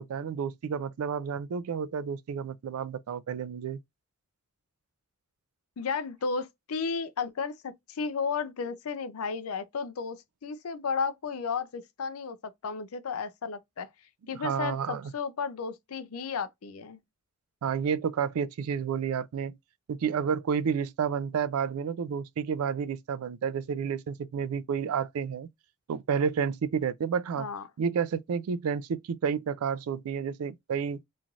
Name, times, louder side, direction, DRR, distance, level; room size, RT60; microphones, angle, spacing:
voice 1, 0.0-3.8 14.3-15.1 17.6-19.6 19.9-25.5 25.9-27.5 27.8-31.0, right 7 dB, 80° right, 0.4 m, -30 dB
voice 2, 5.8-13.9 14.3-17.0 27.4-27.6, left 5 dB, 80° left, 0.5 m, -33 dB
3.1 x 2.5 x 2.3 m
head